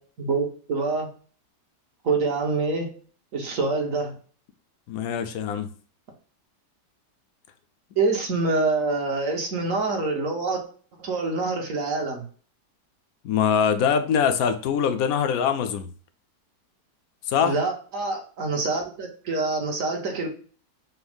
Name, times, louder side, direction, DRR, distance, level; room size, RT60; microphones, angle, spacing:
voice 1, 0.2-1.1 2.0-2.9 3.3-4.1 8.0-10.6 11.0-12.2 17.4-20.3, right 3 dB, 55° right, 1.3 m, -26 dB
voice 2, 4.9-5.7 13.2-15.9 17.3-17.5, left 7 dB, 70° left, 0.9 m, -23 dB
6.1 x 2.1 x 3.4 m
omnidirectional pair, 1.8 m